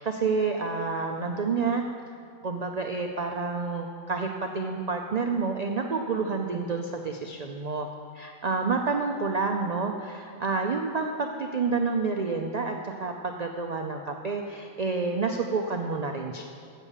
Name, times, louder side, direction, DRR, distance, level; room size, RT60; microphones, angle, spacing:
voice 1, 0.0-1.8 2.4-7.9 8.1-16.5, right 4 dB, 90° right, 3 dB, 0.3 m, -29 dB
8.2 x 6.8 x 7.1 m, 2.4 s
omnidirectional pair, 1.4 m